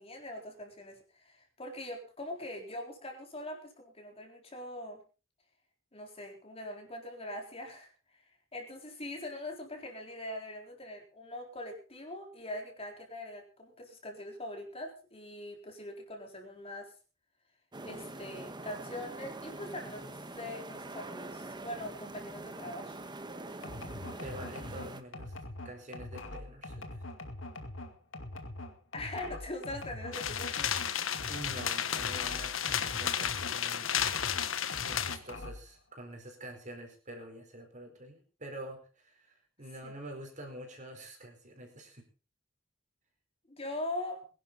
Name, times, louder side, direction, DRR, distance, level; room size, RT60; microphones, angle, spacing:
voice 1, 0.0-5.0 5.9-7.9 8.5-16.9 17.8-23.0 28.9-30.8 39.8-39.9 43.5-44.2, left 1 dB, 30° left, 2 dB, 3.9 m, -42 dB
sound 1, 17.7-25.0, right 2 dB, 25° right, 1.3 m, -44 dB
sound 2, 23.6-33.6 33.9-35.7, left 2 dB, 70° left, 2.3 m, -43 dB
voice 2, 24.2-25.3 25.6-27.0 30.7-33.9 34.8-42.0, right 1 dB, 40° right, 3 dB, 4.7 m, -46 dB
sound 3, 30.1-35.2, left 9 dB, 85° left, 1.3 m, -33 dB
22.5 x 11.5 x 4.0 m, 0.35 s
head